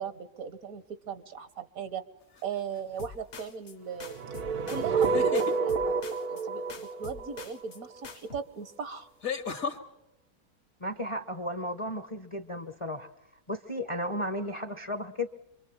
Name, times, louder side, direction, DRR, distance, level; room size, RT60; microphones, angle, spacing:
voice 1, 0.0-2.0 2.4-4.1 4.7-6.0 6.3-9.1, right 7 dB, 70° right, 13 dB, 1.6 m, -38 dB
sound 1, 2.4-2.8 4.9-5.6 7.8-7.9 9.2-9.8, left 6 dB, 70° left, 2.3 m, -33 dB
sound 2, 3.0-3.7 4.0-5.1 5.3-6.4 6.7-8.4, left 5 dB, 50° left, 1.3 m, -46 dB
sound 3, 4.0-8.1, right 4 dB, 85° right, 1.7 m, -29 dB
voice 2, 10.8-13.1 13.5-15.3, left 1 dB, 25° left, 11 dB, 0.8 m, -34 dB
26.0 x 23.5 x 7.2 m, 0.81 s
omnidirectional pair, 1.6 m